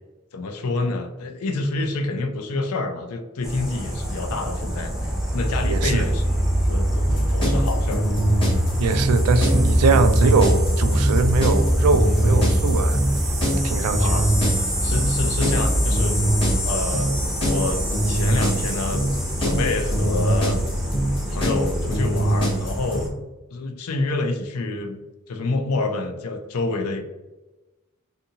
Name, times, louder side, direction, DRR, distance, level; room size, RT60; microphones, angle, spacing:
voice 1, 0.3-6.2 6.7-8.1 14.0-14.3 14.8-16.2 16.6-19.0 19.4-20.6 21.3-23.1 23.5-25.0 25.3-27.0, left 3 dB, 85° left, 6 dB, 0.4 m, -28 dB
sound 1, 3.4-23.1, equal, ahead, 0.5 m, -23 dB
voice 2, 5.6-6.1 8.8-13.0 13.6-14.2, right 4 dB, 85° right, 10 dB, 0.3 m, -22 dB
sound 2, 7.1-23.0, right 1 dB, 25° left, 0.8 m, -23 dB
2.6 x 2.6 x 2.7 m, 1.1 s
head